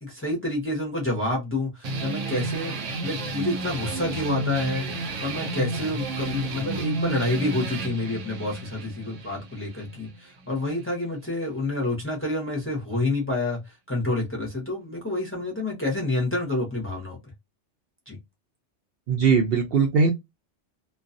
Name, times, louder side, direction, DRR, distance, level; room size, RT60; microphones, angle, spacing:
voice 1, 0.0-17.2 18.1-18.2, left 2 dB, 15° left, 0.7 m, -28 dB
sound 1, 1.8-10.9, right 2 dB, 90° right, 1.1 m, -32 dB
voice 2, 19.1-20.1, right 5 dB, 65° right, 0.7 m, -20 dB
2.4 x 2.3 x 2.5 m
omnidirectional pair, 1.2 m